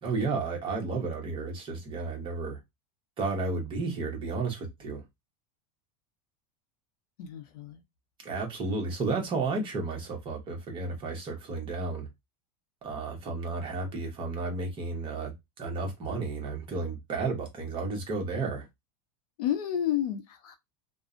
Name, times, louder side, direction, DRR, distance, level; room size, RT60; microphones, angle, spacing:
voice 1, 0.0-2.6 3.2-5.0 8.2-12.1 12.8-18.7, right 3 dB, 25° right, 0.9 m, -32 dB
voice 2, 7.2-7.8 19.4-20.5, left 10 dB, 75° left, 0.6 m, -31 dB
2.4 x 2.1 x 2.4 m
supercardioid pair, 140°, 20 cm